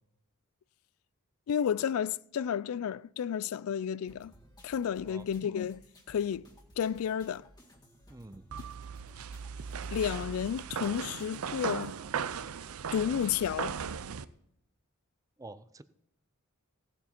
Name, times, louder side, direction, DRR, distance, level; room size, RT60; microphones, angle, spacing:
voice 1, 1.5-4.3 4.6-5.8 6.1-6.5 6.8-7.5 9.9-11.9 12.9-13.8, left 8 dB, 75° left, 0.3 m, -31 dB
sound 1, 4.1-12.1, equal, 20° left, 1.8 m, -58 dB
voice 2, 8.1-8.4 15.4-15.8, right 2 dB, 15° right, 0.5 m, -47 dB
sound 2, 8.5-14.2, right 6 dB, 80° right, 0.6 m, -37 dB
16.5 x 8.0 x 4.4 m
head